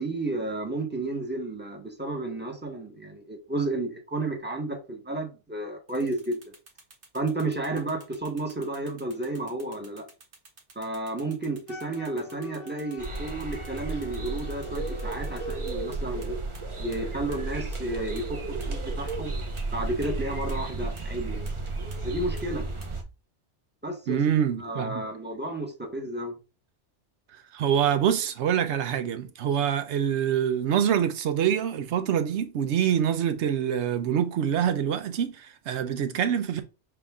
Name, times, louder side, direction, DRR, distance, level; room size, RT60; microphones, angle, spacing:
voice 1, 0.0-6.5 7.1-10.0 10.7-16.4 16.8-19.3 19.7-21.4 22.0-22.7 23.8-26.3, right 2 dB, 10° right, 0.9 m, -32 dB
sound 1, 5.9-16.3 16.5-16.6 16.9-17.0 17.3-17.4 17.7-17.8 18.2-18.3 18.6-18.7 19.1-19.2 19.6-19.7 20.0-20.1 20.5-20.6 21.0-21.1 21.5-21.6 21.9-22.0 22.4-22.5 22.8-22.9, right 3 dB, 50° right, 1.2 m, -51 dB
Wind instrument woodwind instrument, 11.7-15.6, left 6 dB, 90° left, 1.3 m, -47 dB
sound 2, 13.0-23.0, right 3 dB, 30° right, 0.6 m, -33 dB
voice 2, 24.1-25.0 27.5-36.6, right 9 dB, 75° right, 0.9 m, -25 dB
5.8 x 2.5 x 3.5 m
omnidirectional pair, 1.2 m